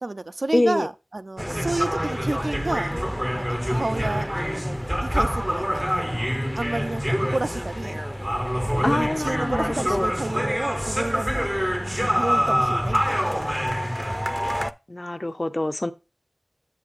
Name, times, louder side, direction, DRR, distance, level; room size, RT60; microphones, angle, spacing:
voice 1, 0.0-2.9 3.5-4.3 5.0-7.0 7.3-8.1 8.7-11.5 12.0-13.5, right 2 dB, 70° right, 0.4 m, -30 dB
voice 2, 0.5-0.9 8.8-10.1 14.9-15.9, left 1 dB, 40° left, 0.6 m, -25 dB
sound 1, 1.4-14.7, equal, 5° right, 0.5 m, -26 dB
8.3 x 7.9 x 2.5 m
wide cardioid pair, 40°, 0 cm